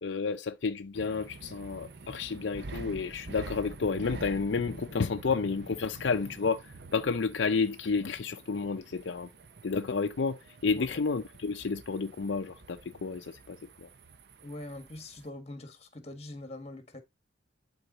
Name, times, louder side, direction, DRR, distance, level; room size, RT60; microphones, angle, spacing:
voice 1, 0.0-9.3 9.6-13.9, left 4 dB, 70° left, 0.5 m, -31 dB
sound 1, 0.9-15.3, right 3 dB, 55° right, 0.7 m, -47 dB
voice 2, 14.4-17.0, left 1 dB, 35° left, 1.5 m, -43 dB
11.0 x 3.9 x 4.0 m
head